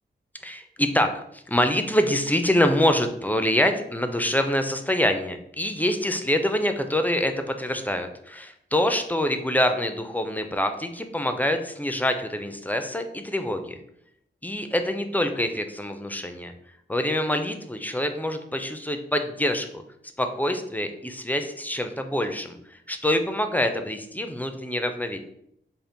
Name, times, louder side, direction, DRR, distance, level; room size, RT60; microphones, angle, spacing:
voice 1, 0.4-13.8 14.4-16.5 16.9-19.7 20.2-25.2, left 1 dB, 10° left, 7 dB, 0.4 m, -25 dB
3.5 x 2.4 x 3.8 m, 0.74 s
wide cardioid pair, 85°, 18 cm